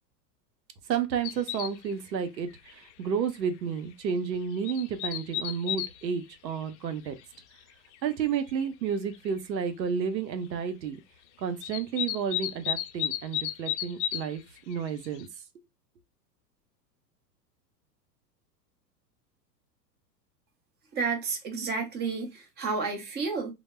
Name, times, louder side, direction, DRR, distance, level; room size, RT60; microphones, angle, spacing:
voice 1, 0.9-7.2 8.0-11.0 11.4-14.4 14.7-15.3, right 7 dB, 85° right, 0.7 m, -31 dB
sound 1, 1.2-1.9 2.3-2.4 2.7-2.9 3.3-3.4 4.3-5.9 6.6-6.7 7.9-8.0 8.6-8.7 8.9-9.3 11.6-14.3 14.6-15.2, left 11 dB, 50° left, 0.5 m, -33 dB
voice 2, 20.9-23.5, right 4 dB, 20° right, 0.7 m, -31 dB
2.1 x 2.0 x 3.2 m
hypercardioid pair, 100°, 50 cm